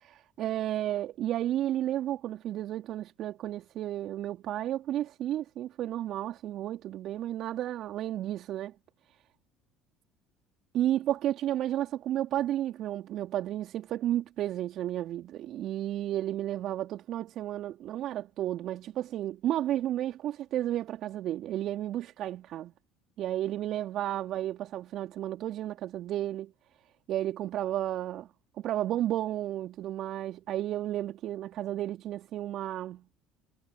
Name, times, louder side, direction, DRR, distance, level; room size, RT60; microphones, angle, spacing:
voice 1, 0.1-8.8 10.7-22.7 23.2-26.5 27.1-28.3 28.6-33.0, right 12 dB, 55° right, 3.0 m, -32 dB
hypercardioid pair, 65°, 0 cm